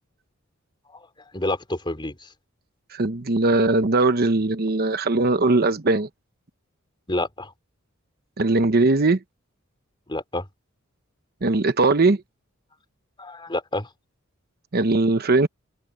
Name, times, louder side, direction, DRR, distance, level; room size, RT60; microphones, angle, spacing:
voice 1, 1.3-2.3 7.1-7.5 10.1-10.5 13.2-13.9, left 2 dB, 25° left, 3.5 m, -28 dB
voice 2, 2.9-6.1 8.4-9.2 11.4-12.2 14.7-15.5, right 2 dB, 50° right, 1.0 m, -20 dB
head